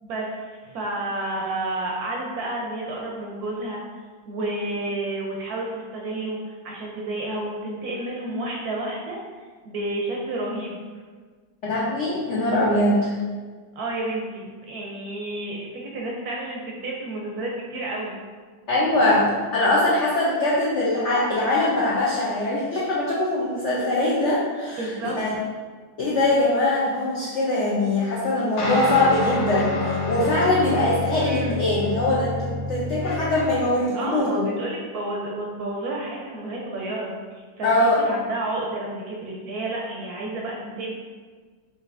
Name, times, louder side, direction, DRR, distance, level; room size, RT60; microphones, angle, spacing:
voice 1, 0.0-0.5 0.7-3.8 4.3-9.2 9.6-10.8 13.8-18.1 24.8-25.2 31.2-31.6 33.9-40.9, right 2 dB, 70° right, -2 dB, 0.9 m, -30 dB
voice 2, 11.6-13.1 18.7-25.4 26.0-34.5 37.6-38.0, left 2 dB, 85° left, -6 dB, 0.6 m, -22 dB
sound 1, 28.6-33.7, left 2 dB, 65° left, 1.2 m, -28 dB
5.4 x 2.6 x 2.5 m, 1.5 s
omnidirectional pair, 2.0 m